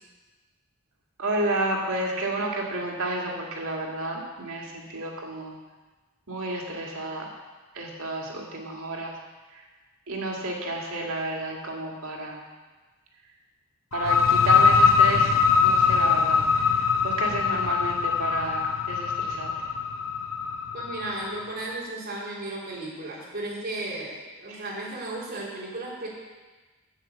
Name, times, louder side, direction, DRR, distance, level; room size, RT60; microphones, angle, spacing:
voice 1, 1.2-5.5 6.3-7.3 7.8-9.1 10.1-12.4 13.9-15.3 15.6-16.4 17.0-19.5 24.5-24.6, right 2 dB, 90° right, -1 dB, 2.1 m, -31 dB
sound 1, 13.9-21.4, left 6 dB, 75° left, 0.7 m, -22 dB
voice 2, 20.7-26.1, right 2 dB, 50° right, -6 dB, 3.6 m, -35 dB
9.1 x 7.9 x 7.2 m, 1.3 s
head